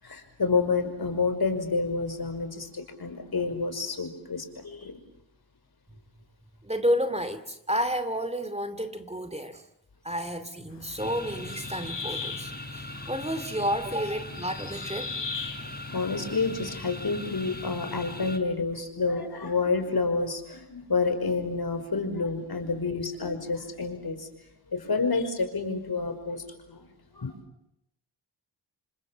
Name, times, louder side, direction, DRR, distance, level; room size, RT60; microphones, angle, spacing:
voice 1, 0.0-5.0 15.9-24.3 24.7-26.9 27.1-27.3, left 4 dB, 55° left, 5.5 m, -29 dB
voice 2, 6.6-9.6 10.0-15.5, equal, 15° right, 2.6 m, -31 dB
sound 1, 10.7-17.8, left 5 dB, 70° left, 4.4 m, -41 dB
sound 2, 11.0-18.4, left 1 dB, 20° left, 4.0 m, -40 dB
28.0 x 26.0 x 7.3 m
cardioid pair, 45°, 45 cm